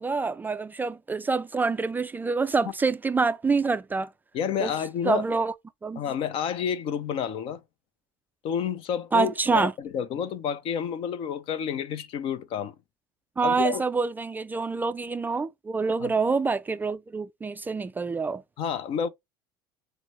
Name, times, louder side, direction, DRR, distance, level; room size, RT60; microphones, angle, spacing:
voice 1, 0.0-4.1 4.6-4.7 5.1-5.5 5.8-6.0 9.1-9.7 13.4-18.4, right 4 dB, 15° right, 0.3 m, -26 dB
voice 2, 4.3-5.2 6.0-7.6 8.4-12.7 13.4-13.8 16.0-16.1 18.6-19.1, left 8 dB, 55° left, 0.7 m, -30 dB
5.8 x 2.1 x 3.2 m
supercardioid pair, 90°, 11 cm